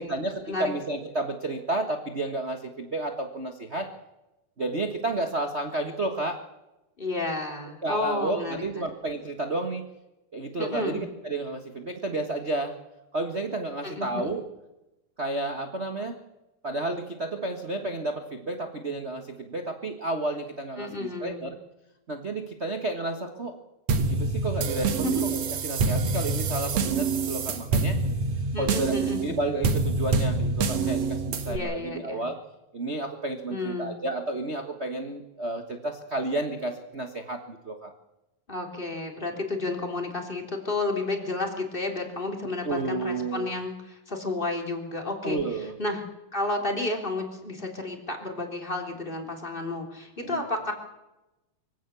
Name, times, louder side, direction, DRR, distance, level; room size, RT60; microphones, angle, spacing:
voice 1, 0.0-3.9 4.6-6.4 7.8-9.9 10.3-12.7 13.1-14.5 15.2-16.2 16.6-21.6 22.1-23.6 24.0-28.0 28.6-32.4 32.7-37.9 42.4-43.5 45.2-45.7 50.2-50.4, right 2 dB, 85° right, 4 dB, 0.5 m, -31 dB
voice 2, 7.0-8.6 10.6-11.0 13.8-14.3 20.8-21.5 25.0-25.1 28.5-29.2 31.4-32.3 33.5-34.0 38.5-45.4 45.8-46.0 46.3-50.7, left 2 dB, 15° left, 2 dB, 3.2 m, -31 dB
sound 1, 23.9-31.6, right 4 dB, 55° right, 2.3 m, -26 dB
24.0 x 16.5 x 6.9 m, 0.96 s
omnidirectional pair, 3.8 m